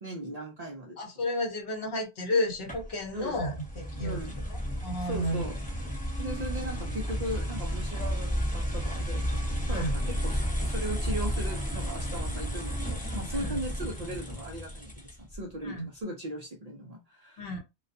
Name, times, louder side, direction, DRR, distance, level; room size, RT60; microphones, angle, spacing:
voice 1, 0.0-1.0 3.1-3.5 4.0-4.5 5.0-5.7 6.2-9.3 9.7-17.5, right 1 dB, 55° right, 0.5 m, -38 dB
voice 2, 1.0-4.2 4.8-5.4 9.7-10.0 13.4-13.6 15.6-15.9 17.4-17.6, left 1 dB, 65° left, 1.0 m, -31 dB
sound 1, 2.7-15.4, equal, 10° left, 0.7 m, -32 dB
2.3 x 2.2 x 2.5 m
omnidirectional pair, 1.1 m